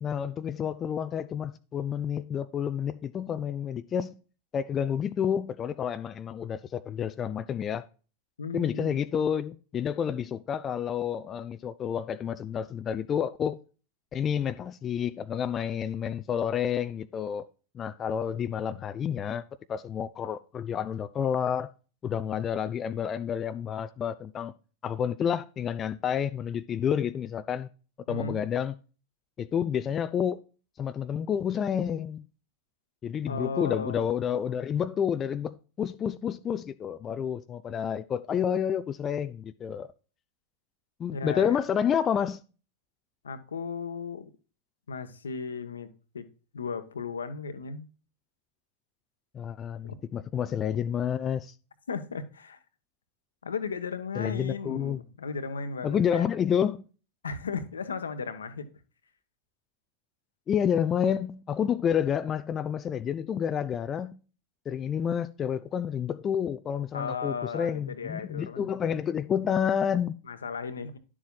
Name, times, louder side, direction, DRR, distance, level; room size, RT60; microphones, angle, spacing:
voice 1, 0.0-4.2 4.5-7.8 8.5-13.6 14.1-17.4 17.7-19.4 19.7-21.7 22.0-24.5 24.8-27.7 28.1-28.7 29.4-30.4 30.8-32.2 33.0-39.9 41.0-42.4 49.3-51.5 54.2-55.0 55.8-56.9 60.5-64.2 64.7-70.1, left 8 dB, 25° left, 0.5 m, -29 dB
voice 2, 8.4-9.0 28.1-28.4 33.3-34.1 41.1-41.6 43.2-44.3 44.9-45.9 46.1-46.2 46.5-47.8 49.8-49.9 51.9-52.6 53.4-56.3 57.2-58.7 66.9-68.7 70.3-71.0, left 5 dB, 70° left, 1.1 m, -35 dB
11.0 x 7.3 x 2.3 m
figure-of-eight pair, 90°, 0 cm